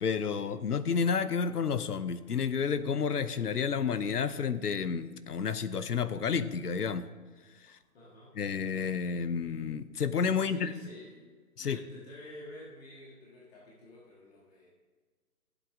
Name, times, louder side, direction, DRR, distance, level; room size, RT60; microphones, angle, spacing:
voice 1, 0.0-7.1 7.7-7.8 8.4-10.7 11.6-11.8, left 6 dB, 75° left, 13 dB, 0.8 m, -30 dB
voice 2, 7.9-8.4 10.3-11.3 11.6-14.7, left 1 dB, 40° left, -5 dB, 1.9 m, -49 dB
13.5 x 8.2 x 3.7 m, 1.5 s
figure-of-eight pair, 135°, 47 cm